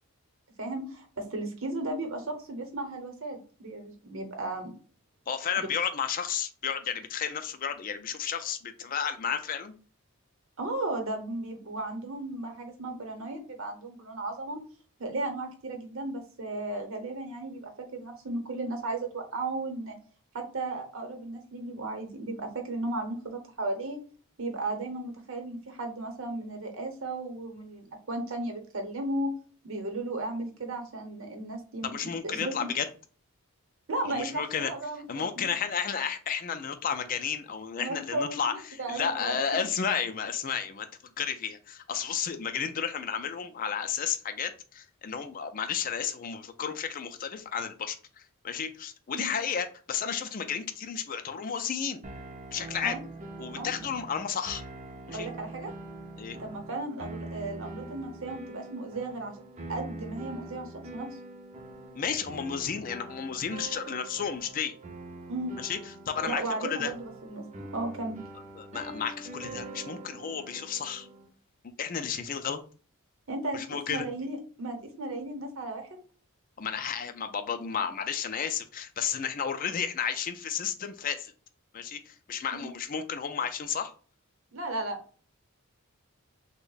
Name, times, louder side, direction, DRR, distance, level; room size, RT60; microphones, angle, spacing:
voice 1, 0.6-4.7 10.6-14.6 15.0-20.0 20.3-24.0 24.4-29.3 29.6-32.7 33.9-35.5 37.8-39.4 49.1-49.3 52.8-53.0 53.6-53.7 55.1-55.7 56.4-59.3 59.7-61.1 65.3-65.6 66.2-67.5 67.7-68.2 73.3-75.9 82.5-82.7 84.5-85.0, right 2 dB, 60° right, 4 dB, 0.9 m, -35 dB
voice 2, 5.3-9.7 31.8-32.9 34.0-34.7 35.1-40.9 41.2-48.0 48.4-52.0 52.5-53.0 53.4-54.6 55.1-55.3 56.2-56.4 61.9-64.7 65.6-65.8 66.1-66.9 68.5-71.1 71.8-72.6 73.5-74.1 76.6-81.3 81.7-83.9, left 7 dB, 40° left, 8 dB, 0.4 m, -32 dB
sound 1, 52.0-71.3, right 2 dB, 30° right, 0.5 m, -43 dB
3.4 x 2.1 x 3.8 m, 0.39 s
head